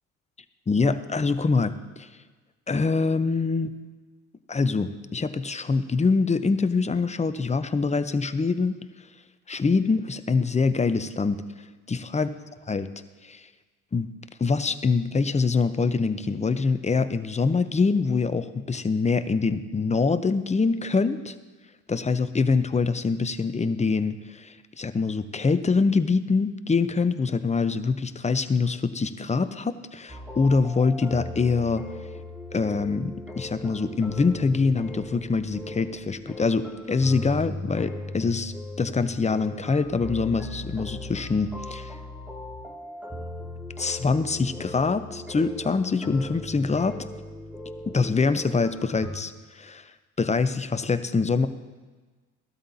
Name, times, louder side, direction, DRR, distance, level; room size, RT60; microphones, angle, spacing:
voice 1, 0.7-2.1 2.7-3.7 4.5-8.8 9.5-11.4 11.9-12.3 12.7-12.9 13.2-13.4 13.9-14.1 14.4-21.3 21.9-31.8 32.5-41.9 43.8-47.0 47.9-49.9 50.2-51.5, left 4 dB, 20° left, 11 dB, 0.7 m, -24 dB
sound 1, 30.1-49.1, left 1 dB, 5° right, 2.3 m, -38 dB
16.5 x 12.5 x 2.8 m, 1.3 s
hypercardioid pair, 60°, 38 cm